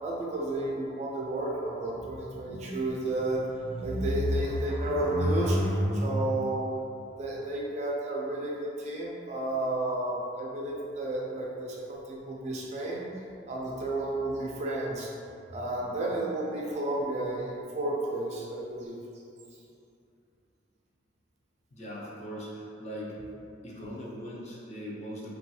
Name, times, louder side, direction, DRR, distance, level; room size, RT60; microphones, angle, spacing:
voice 1, 0.0-6.6 7.2-13.1 13.5-15.1 15.5-19.0, right 1 dB, 35° right, -3 dB, 0.4 m, -31 dB
voice 2, 21.7-23.1 23.6-25.3, equal, 35° left, -4 dB, 0.5 m, -40 dB
3.1 x 2.3 x 2.7 m, 2.6 s
head